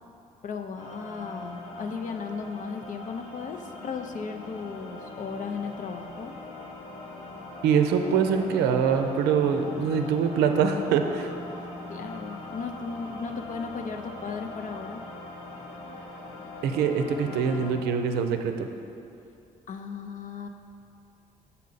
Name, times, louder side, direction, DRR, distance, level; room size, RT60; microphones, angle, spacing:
voice 1, 0.4-6.3 11.9-15.0 19.7-20.5, left 5 dB, 50° left, 6 dB, 0.5 m, -36 dB
sound 1, 0.8-17.7, left 2 dB, 70° left, 1.1 m, -41 dB
voice 2, 7.6-11.3 16.6-18.7, right 6 dB, 80° right, 6 dB, 0.5 m, -24 dB
7.3 x 5.6 x 4.0 m, 2.7 s
hypercardioid pair, 55°, 17 cm